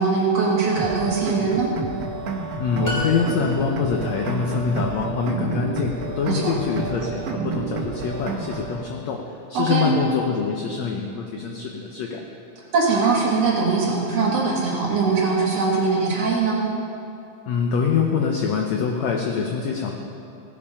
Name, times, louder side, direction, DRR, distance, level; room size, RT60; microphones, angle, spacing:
voice 1, 0.0-1.7 6.3-6.5 9.5-9.9 12.7-16.6, right 4 dB, 55° right, -3 dB, 2.2 m, -21 dB
sound 1, 0.8-8.8, right 4 dB, 80° right, 1.4 m, -30 dB
voice 2, 2.6-12.2 17.5-19.9, left 5 dB, 85° left, 1 dB, 1.5 m, -25 dB
sound 2, 2.8-4.0, equal, 15° left, 3.0 m, -31 dB
16.5 x 7.4 x 5.6 m, 2.6 s
omnidirectional pair, 4.1 m